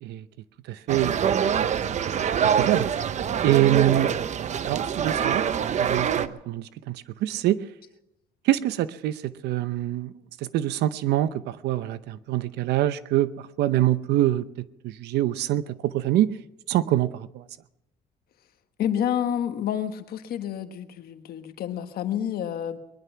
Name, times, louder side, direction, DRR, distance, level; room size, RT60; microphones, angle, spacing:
voice 1, 0.7-1.3 2.4-2.9 3.4-4.1 4.7-5.4 5.8-7.6 8.4-10.1 10.4-16.3 16.7-17.4, right 14 dB, 80° right, 15 dB, 0.8 m, -25 dB
sound 1, 0.9-6.3, right 8 dB, 45° right, 0.8 m, -25 dB
voice 2, 18.8-22.8, left 9 dB, 65° left, 8 dB, 1.5 m, -29 dB
21.5 x 11.0 x 5.8 m, 0.91 s
cardioid pair, 110°, 17 cm